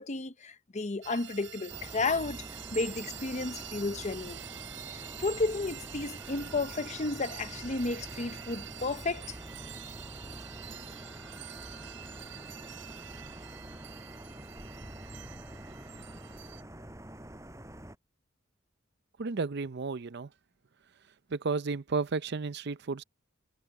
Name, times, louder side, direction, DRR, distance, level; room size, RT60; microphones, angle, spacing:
voice 1, 0.0-2.4 2.7-4.4 5.2-9.4, left 3 dB, 35° left, 0.8 m, -32 dB
sound 1, 1.0-16.6, right 11 dB, 75° right, 4.2 m, -46 dB
sound 2, 1.7-18.0, right 1 dB, 15° right, 7.9 m, -46 dB
voice 2, 19.2-20.3 21.3-23.0, right 4 dB, 60° right, 0.6 m, -32 dB
head